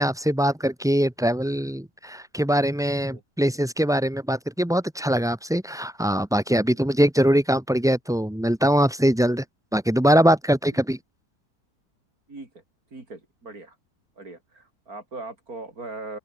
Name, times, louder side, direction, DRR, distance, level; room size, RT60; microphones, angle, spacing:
voice 1, 0.0-9.4 9.7-11.0, equal, 5° right, 0.4 m, -22 dB
voice 2, 12.3-12.6 12.9-13.8 14.2-16.2, right 2 dB, 55° right, 5.5 m, -40 dB
open air
omnidirectional pair, 1.8 m